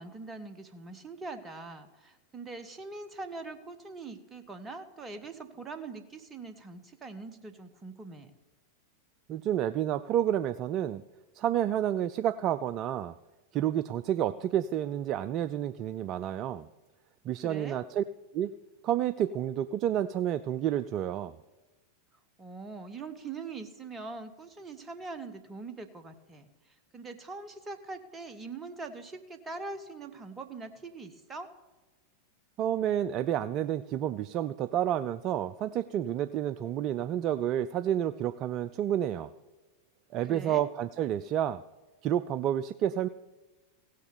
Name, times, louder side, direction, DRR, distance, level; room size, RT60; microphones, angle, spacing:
voice 1, 0.0-8.3 17.4-17.8 22.4-26.5 26.9-31.5 40.2-40.6, right 3 dB, 20° right, 9 dB, 1.1 m, -42 dB
voice 2, 9.3-11.0 11.3-13.1 13.5-16.7 17.3-18.0 18.3-18.5 18.8-21.3 32.6-39.3 40.1-41.6 42.0-43.1, right 11 dB, 35° right, 14 dB, 0.3 m, -30 dB
16.0 x 6.5 x 7.0 m, 1.2 s
figure-of-eight pair, 90°, 0 cm